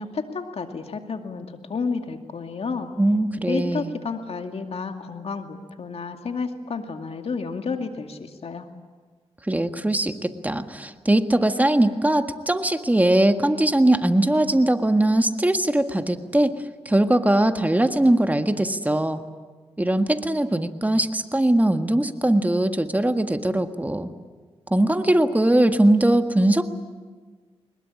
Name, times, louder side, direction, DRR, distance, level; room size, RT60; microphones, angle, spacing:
voice 1, 0.0-2.9 3.5-8.7, left 4 dB, 65° left, 6 dB, 2.4 m, -31 dB
voice 2, 3.0-3.9 9.5-16.5 16.8-19.2 19.8-24.1 24.7-26.7, right 1 dB, 15° right, 8 dB, 1.7 m, -20 dB
21.5 x 20.5 x 9.9 m, 1.4 s
cardioid pair, 60°, 11 cm